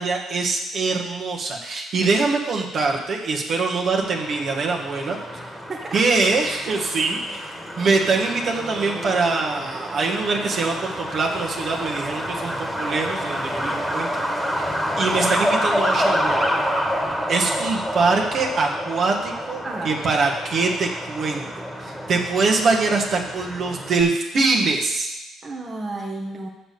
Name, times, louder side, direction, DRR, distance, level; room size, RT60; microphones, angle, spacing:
voice 1, 0.0-5.2 5.9-14.7 15.0-16.5 17.3-25.1, right 3 dB, 60° right, 0 dB, 1.5 m, -23 dB
Truck, 4.0-24.0, equal, 5° left, 1.6 m, -28 dB
voice 2, 19.6-20.0 25.4-26.5, right 2 dB, 35° right, 0 dB, 1.3 m, -32 dB
6.7 x 6.0 x 6.9 m, 0.93 s
supercardioid pair, 70°, 0 cm